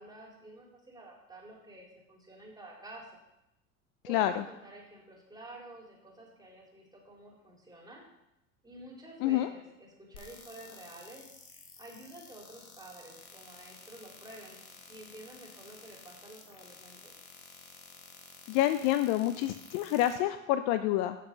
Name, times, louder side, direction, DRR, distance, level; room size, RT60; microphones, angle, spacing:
voice 1, 0.0-3.1 4.1-8.0 8.6-11.3 11.8-14.6 14.9-17.2, right 1 dB, 10° right, -3 dB, 3.9 m, -50 dB
voice 2, 4.1-4.4 9.2-9.5 18.5-21.2, left 13 dB, 50° left, 10 dB, 0.6 m, -28 dB
sound 1, 10.1-20.1, left 4 dB, 85° left, 1.9 m, -52 dB
8.6 x 6.9 x 6.1 m, 0.87 s
hypercardioid pair, 85°, 42 cm